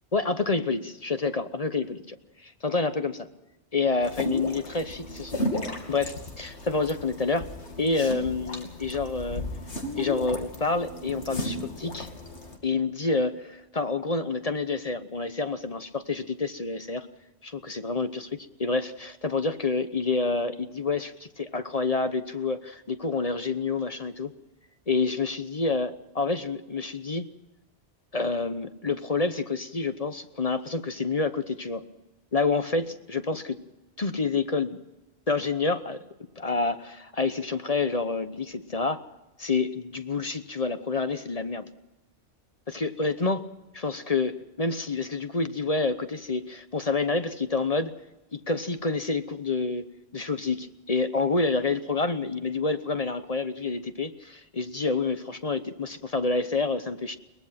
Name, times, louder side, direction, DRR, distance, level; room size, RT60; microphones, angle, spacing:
voice 1, 0.1-3.3 3.7-5.4 5.9-7.5 7.8-9.5 10.0-12.1 12.6-17.1 17.4-24.3 24.9-27.3 28.1-31.8 32.3-33.6 34.0-34.8 35.3-36.0 36.4-39.0 39.4-41.7 42.7-43.5 43.7-47.9 48.3-49.9 50.1-57.2, left 3 dB, 35° left, 10 dB, 1.0 m, -28 dB
sound 1, 4.0-12.6, left 1 dB, 80° left, 3.0 m, -35 dB
22.5 x 20.5 x 5.9 m, 0.98 s
omnidirectional pair, 1.2 m